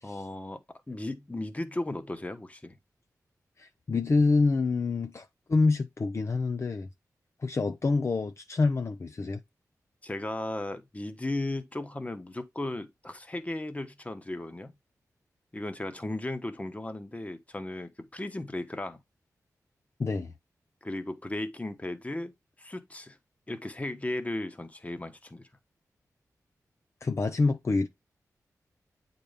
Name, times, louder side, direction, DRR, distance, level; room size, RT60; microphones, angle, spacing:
voice 1, 0.0-2.8 10.0-14.7 15.5-19.0 20.8-22.3 22.6-23.2 23.5-25.5, left 1 dB, 20° left, 1.1 m, -36 dB
voice 2, 3.6-6.9 7.4-9.4 20.0-20.3 27.0-27.9, left 3 dB, 45° left, 0.6 m, -27 dB
8.5 x 4.0 x 3.5 m
cardioid pair, 55°, 6 cm